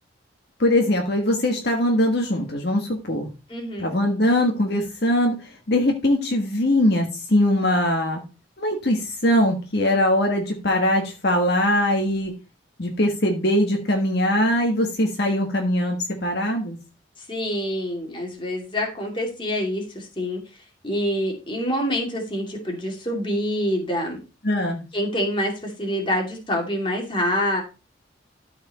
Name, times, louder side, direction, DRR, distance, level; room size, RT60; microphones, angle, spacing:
voice 1, 0.6-3.3 3.8-8.2 8.6-12.3 12.8-16.8 24.4-24.8, left 1 dB, 60° left, 2 dB, 1.6 m, -21 dB
voice 2, 3.5-4.0 17.2-20.4 20.8-24.2 24.9-27.6, equal, 25° left, 1 dB, 2.6 m, -26 dB
13.0 x 4.8 x 4.2 m, 0.30 s
head